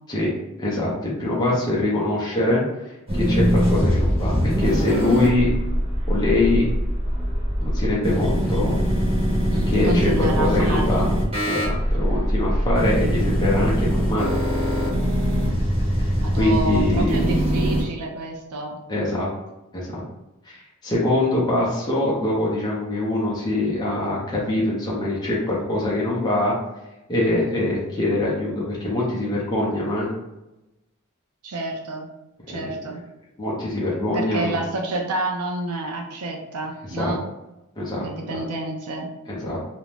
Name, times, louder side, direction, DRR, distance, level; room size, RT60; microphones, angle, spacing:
voice 1, 0.6-5.5 6.1-6.7 7.6-8.8 9.7-11.1 11.4-14.3 16.0-17.3 18.9-19.3 19.7-20.0 20.4-26.5 27.1-30.1 32.5-32.6 33.4-34.6 37.0-37.1 37.8-38.1 39.3-39.6, left 2 dB, 20° left, -5 dB, 0.5 m, -23 dB
sound 1, 3.1-17.8, equal, 25° right, 0.9 m, -22 dB
voice 2, 9.5-11.1 16.2-18.8 31.4-32.1 32.5-33.0 34.1-37.2 38.0-39.1, right 2 dB, 85° right, 2 dB, 0.5 m, -29 dB
2.5 x 2.0 x 3.1 m, 0.96 s
head